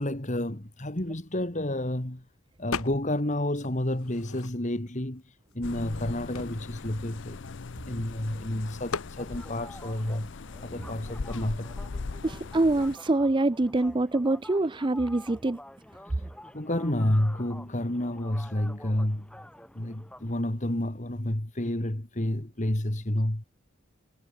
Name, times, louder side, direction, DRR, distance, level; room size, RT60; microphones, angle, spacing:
voice 1, 0.0-2.2 2.6-7.4 7.9-11.8 13.7-13.8 16.0-16.3 16.5-19.3 19.8-23.4, left 1 dB, 35° left, 1.9 m, -30 dB
sound 1, 2.7-3.3 3.6-4.9 5.5-5.6 5.8-8.1 8.9-9.2, left 5 dB, 85° left, 1.3 m, -37 dB
sound 2, 5.6-13.0, left 4 dB, 55° left, 0.6 m, -40 dB
sound 3, 9.2-20.4, left 1 dB, 5° left, 2.7 m, -49 dB
voice 2, 12.2-15.6, right 2 dB, 20° right, 0.5 m, -25 dB
head